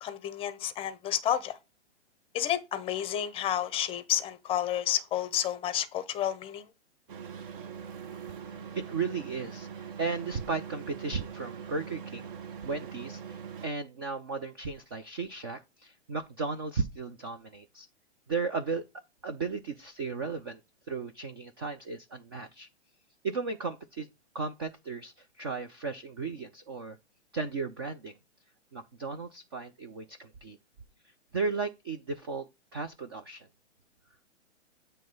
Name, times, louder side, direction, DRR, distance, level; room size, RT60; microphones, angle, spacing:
voice 1, 0.0-1.6 2.3-6.7, left 11 dB, 15° left, 0.7 m, -30 dB
sound 1, 7.1-13.7, right 7 dB, 45° right, 1.1 m, -42 dB
voice 2, 8.5-12.3 12.6-17.9 18.3-20.6 20.9-22.7 23.2-24.1 24.3-27.0 27.3-28.2 28.7-30.6 31.3-33.5, right 4 dB, 20° right, 0.3 m, -35 dB
7.5 x 3.2 x 5.2 m
hypercardioid pair, 125°, 36 cm